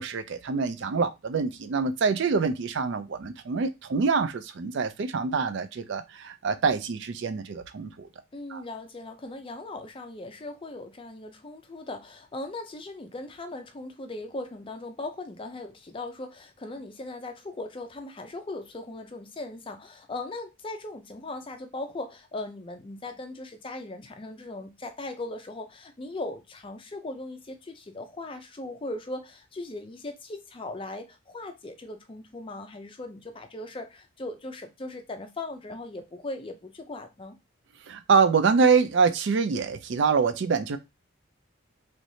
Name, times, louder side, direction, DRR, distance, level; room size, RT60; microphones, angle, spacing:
voice 1, 0.0-8.1 8.5-8.6 37.9-40.8, right 5 dB, 55° right, 0.4 m, -25 dB
voice 2, 8.3-37.4, left 2 dB, 25° left, 0.4 m, -39 dB
3.2 x 3.1 x 2.6 m
head